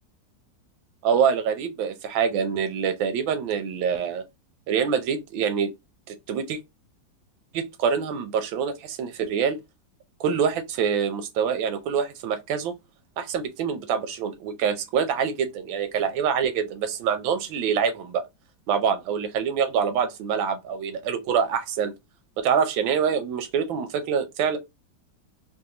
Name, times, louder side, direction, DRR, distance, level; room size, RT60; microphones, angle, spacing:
voice 1, 1.0-4.2 4.7-5.7 6.1-6.6 7.5-9.6 10.2-12.7 13.2-18.2 18.7-21.9 22.4-24.6, right 7 dB, 90° right, 1.5 m, -25 dB
4.0 x 2.6 x 2.8 m
omnidirectional pair, 2.1 m